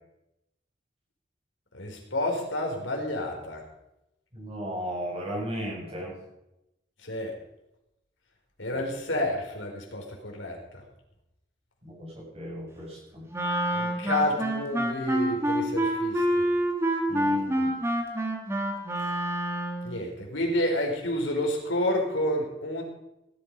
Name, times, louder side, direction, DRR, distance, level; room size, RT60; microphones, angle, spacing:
voice 1, 1.7-3.6 7.0-7.3 8.6-10.8 13.7-16.4 19.8-22.8, left 1 dB, 85° left, 1 dB, 4.4 m, -29 dB
voice 2, 4.3-6.2 8.7-8.8 11.8-13.3 17.1-17.7, equal, 30° right, -3 dB, 7.1 m, -35 dB
Wind instrument woodwind instrument, 13.3-19.9, right 1 dB, 15° right, 2.3 m, -27 dB
18.5 x 12.0 x 5.5 m, 0.89 s
head